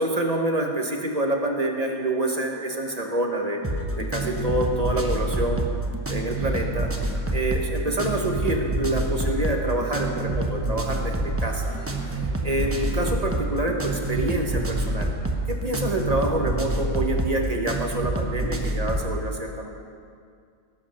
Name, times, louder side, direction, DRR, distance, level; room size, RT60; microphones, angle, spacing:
voice 1, 0.0-3.6 4.0-5.6 6.1-6.9 7.3-11.8 12.1-15.1 15.5-19.7, right 1 dB, 30° right, 2 dB, 1.2 m, -27 dB
sound 1, 3.6-19.1, right 2 dB, 10° right, 0.9 m, -27 dB
18.0 x 7.9 x 5.8 m, 2.2 s
omnidirectional pair, 1.5 m